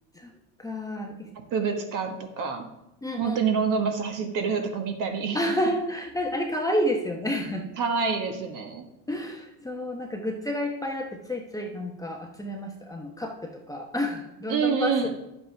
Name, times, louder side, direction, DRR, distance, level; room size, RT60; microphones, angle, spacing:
voice 1, 0.6-1.3 3.0-3.6 5.3-7.7 9.1-15.1, left 1 dB, 10° left, 1 dB, 0.9 m, -30 dB
voice 2, 1.5-2.7 3.2-5.4 7.8-8.9 14.5-15.1, right 5 dB, 45° right, 5 dB, 1.5 m, -27 dB
10.5 x 7.7 x 3.4 m, 0.87 s
supercardioid pair, 120°, 43 cm